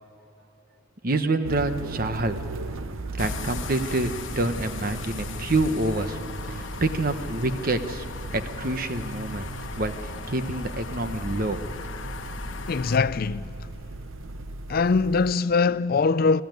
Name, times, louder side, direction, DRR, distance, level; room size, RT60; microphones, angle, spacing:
voice 1, 1.0-2.4 3.2-6.2 6.8-8.0 8.3-9.5 9.8-9.9 10.3-11.7, right 2 dB, 45° right, 1.1 m, -27 dB
sound 1, 1.4-15.3, right 2 dB, 85° right, 0.8 m, -37 dB
sound 2, 3.2-13.0, left 4 dB, 65° left, 1.1 m, -38 dB
voice 2, 12.7-13.5 14.7-16.4, left 4 dB, 45° left, 0.4 m, -22 dB
25.0 x 14.0 x 9.4 m
head